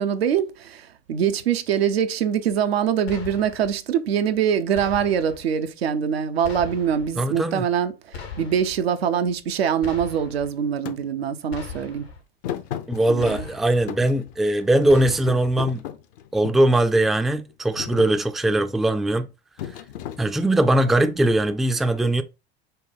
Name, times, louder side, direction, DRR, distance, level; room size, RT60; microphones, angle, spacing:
voice 1, 0.0-12.1 13.1-13.5, right 8 dB, 75° right, 0.6 m, -24 dB
sound 1, 3.1-3.8 4.7-5.4 6.4-7.1 8.1-8.8 9.8-10.5 11.5-12.2 13.2-13.9 14.9-15.6, left 6 dB, 80° left, 1.1 m, -38 dB
voice 2, 7.2-7.7 12.9-15.9 16.3-19.3 20.2-22.2, right 1 dB, ahead, 0.4 m, -20 dB
Thump thud, 10.9-11.0 12.4-13.5 13.9-14.9 15.3-16.7 17.3-17.5 17.8-18.2 19.6-20.7, left 10 dB, 60° left, 0.7 m, -34 dB
5.2 x 2.2 x 4.1 m
figure-of-eight pair, 70°, 31 cm